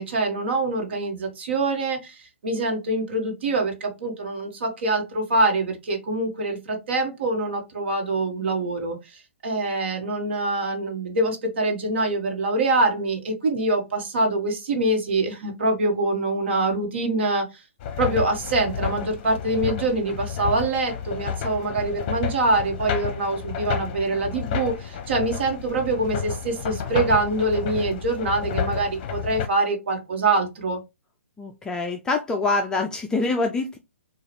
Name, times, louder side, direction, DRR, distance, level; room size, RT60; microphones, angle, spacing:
voice 1, 0.0-9.0 9.4-17.5 18.0-30.8, right 2 dB, 60° right, 1.2 m, -24 dB
sound 1, 17.8-29.5, left 8 dB, 35° left, 0.7 m, -31 dB
voice 2, 31.4-33.8, left 3 dB, 10° left, 0.3 m, -25 dB
4.7 x 2.4 x 3.1 m
hypercardioid pair, 130°, 7 cm